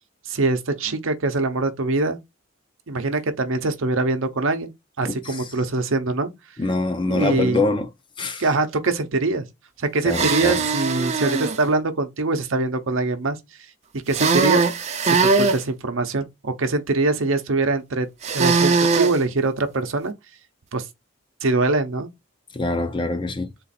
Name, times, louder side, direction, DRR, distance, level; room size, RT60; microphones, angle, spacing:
voice 1, 0.3-2.2 2.9-4.7 5.0-6.3 7.1-7.6 8.4-9.4 9.8-13.4 13.9-14.6 15.0-18.1 18.3-20.1 20.7-20.9 21.4-22.1, right 3 dB, 70° right, 0.7 m, -23 dB
voice 2, 5.0-5.5 6.6-7.9 8.2-8.4 10.0-10.6 22.5-23.5, left 2 dB, 25° left, 0.5 m, -24 dB
sound 1, 10.1-11.6 14.1-15.6 18.2-19.2, right 4 dB, 30° right, 0.5 m, -20 dB
3.9 x 2.5 x 4.1 m
head